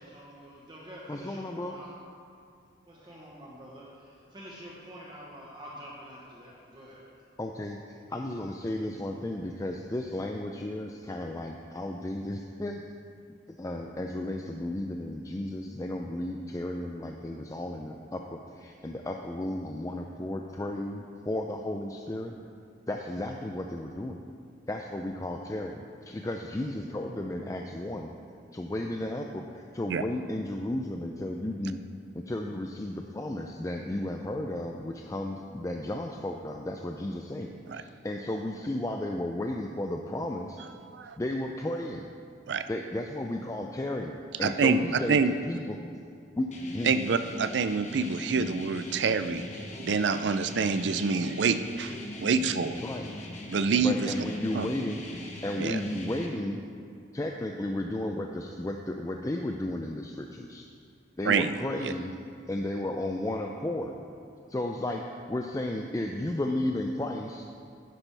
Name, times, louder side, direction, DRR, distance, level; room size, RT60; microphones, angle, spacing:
voice 1, 0.0-1.9 2.9-7.0, equal, 25° right, -5 dB, 1.1 m, -47 dB
voice 2, 1.1-1.8 7.4-12.8 13.5-22.4 22.9-24.2 24.7-28.2 28.5-31.8 32.1-40.6 41.2-42.1 42.7-45.2 45.5-45.8 46.4-46.9 52.7-53.1 53.8-55.0 55.4-56.6 57.1-60.7 61.2-62.1 62.5-64.0 64.5-67.4, left 1 dB, 20° left, 2 dB, 0.4 m, -34 dB
voice 3, 44.4-44.8 45.1-45.3 46.8-52.8 53.5-54.1 54.5-54.7 55.6-55.8 61.2-61.5 61.8-61.9, right 5 dB, 75° right, 11 dB, 0.4 m, -27 dB
sound 1, 46.5-56.3, left 1 dB, 40° left, 1.0 m, -41 dB
10.5 x 9.9 x 3.4 m, 2.4 s
head